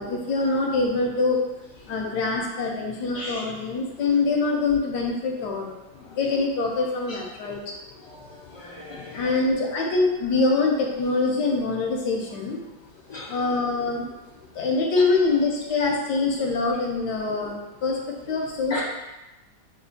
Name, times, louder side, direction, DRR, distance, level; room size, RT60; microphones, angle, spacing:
voice 1, 0.0-1.4 1.9-7.8 9.1-12.6 13.2-14.1 14.5-18.8, left 3 dB, 85° left, -1 dB, 1.3 m, -24 dB
voice 2, 3.1-3.5 8.0-9.4 13.1-13.3 18.7-18.8, left 1 dB, 15° left, -9 dB, 1.3 m, -36 dB
6.6 x 2.5 x 2.6 m, 1.0 s
omnidirectional pair, 1.8 m